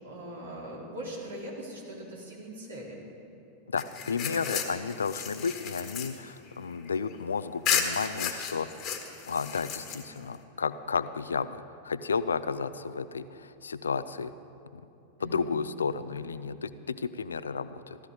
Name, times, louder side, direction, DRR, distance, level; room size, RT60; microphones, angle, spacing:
voice 1, 0.0-3.0 4.4-4.6 15.2-15.6, right 1 dB, 70° right, -4 dB, 3.9 m, -41 dB
voice 2, 3.7-8.7 9.3-14.3 14.7-14.8 15.2-18.0, left 5 dB, 70° left, 14 dB, 0.5 m, -32 dB
sound 1, 3.8-7.2 7.6-10.3, left 7 dB, 35° left, 1.5 m, -33 dB
16.0 x 13.0 x 5.0 m, 2.8 s
figure-of-eight pair, 90°, 0 cm